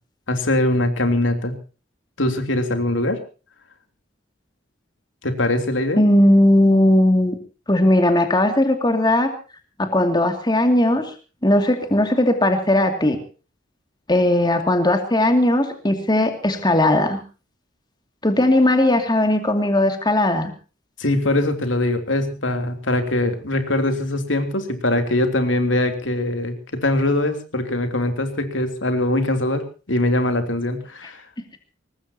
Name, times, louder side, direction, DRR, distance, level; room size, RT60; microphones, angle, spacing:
voice 1, 0.3-1.5 2.2-3.2 5.2-6.0 21.0-31.2, left 1 dB, 85° left, 6 dB, 3.2 m, -22 dB
voice 2, 6.0-7.4 7.7-9.3 9.8-11.1 11.4-13.2 14.1-17.2 18.2-20.5, left 1 dB, 20° left, 5 dB, 2.4 m, -18 dB
23.0 x 19.5 x 2.9 m, 0.35 s
head